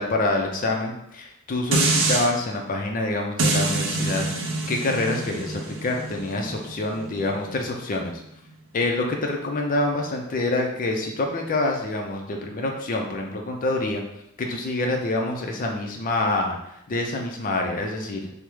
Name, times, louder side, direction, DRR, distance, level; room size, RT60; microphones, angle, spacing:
voice 1, 0.0-8.2 8.7-14.0 14.4-16.6 16.9-18.3, left 2 dB, 40° left, 2 dB, 0.5 m, -26 dB
sound 1, 1.7-2.3 3.4-8.5 9.0-9.1, right 3 dB, 65° right, 0.5 m, -26 dB
3.4 x 2.0 x 3.0 m, 0.79 s
head